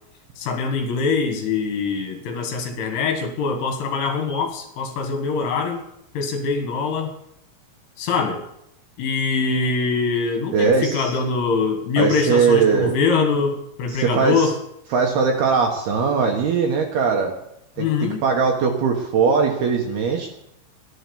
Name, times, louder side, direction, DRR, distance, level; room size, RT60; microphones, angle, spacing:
voice 1, 0.4-5.8 6.2-7.1 8.0-8.4 9.0-14.6 17.8-18.2, left 4 dB, 70° left, 5 dB, 3.9 m, -23 dB
voice 2, 10.5-11.1 12.0-13.0 13.9-14.5 14.9-17.3 17.8-20.3, right 5 dB, 65° right, 2 dB, 2.7 m, -20 dB
14.0 x 11.0 x 7.0 m, 0.78 s
omnidirectional pair, 5.9 m